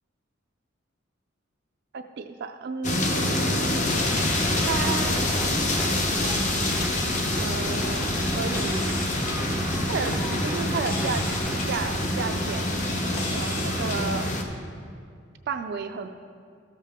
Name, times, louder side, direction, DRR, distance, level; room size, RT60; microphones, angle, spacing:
voice 1, 1.9-3.9 4.6-5.4 7.3-9.2 9.9-11.2 11.7-12.8 13.1-14.3 15.5-16.1, right 5 dB, 55° right, 5 dB, 0.4 m, -33 dB
sound 1, 2.8-14.4, left 1 dB, 40° left, 0.8 m, -26 dB
sound 2, 3.9-14.2, equal, 90° left, 1.4 m, -34 dB
Rain, 4.0-12.0, equal, 5° right, 0.5 m, -37 dB
13.0 x 7.4 x 3.5 m, 2.2 s
head